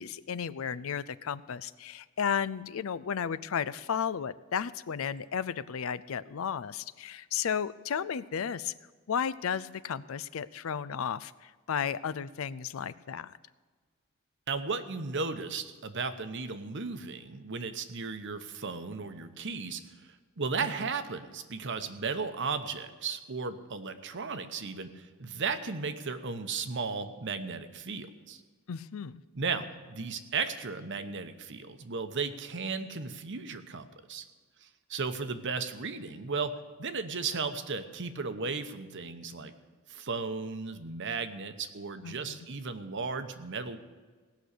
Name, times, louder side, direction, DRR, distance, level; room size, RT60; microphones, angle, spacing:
voice 1, 0.0-8.7 9.1-13.3 28.7-29.2 42.0-42.5, left 7 dB, 70° left, 17 dB, 0.5 m, -34 dB
voice 2, 14.5-19.8 20.4-28.4 29.3-34.2 34.6-39.5 39.9-43.8, right 4 dB, 60° right, 10 dB, 1.0 m, -35 dB
18.0 x 6.2 x 8.3 m, 1.4 s
head